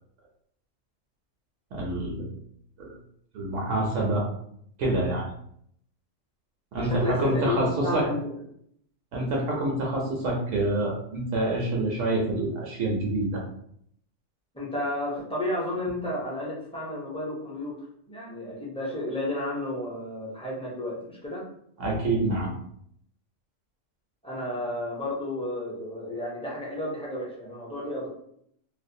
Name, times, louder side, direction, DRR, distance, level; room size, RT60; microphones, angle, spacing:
voice 1, 1.7-2.3 2.8-2.9 3.3-4.2 4.8-5.3 6.7-8.1 9.1-13.4 21.8-22.5, right 2 dB, 80° right, -1 dB, 0.9 m, -27 dB
voice 2, 6.8-8.4 14.5-17.8 18.1-21.4 24.2-28.1, left 1 dB, 10° left, -6 dB, 0.4 m, -32 dB
2.5 x 2.1 x 2.6 m, 0.69 s
omnidirectional pair, 1.3 m